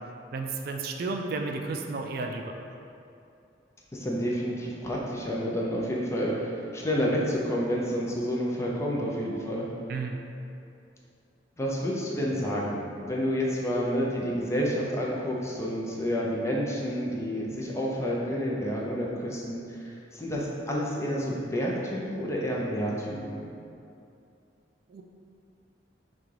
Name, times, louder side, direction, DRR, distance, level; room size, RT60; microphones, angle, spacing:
voice 1, 0.3-2.4 9.9-10.2 24.9-25.0, right 3 dB, 55° right, 3 dB, 0.3 m, -32 dB
voice 2, 3.9-9.7 11.6-23.4, equal, 15° left, -4 dB, 0.5 m, -29 dB
5.9 x 2.3 x 3.3 m, 2.6 s
head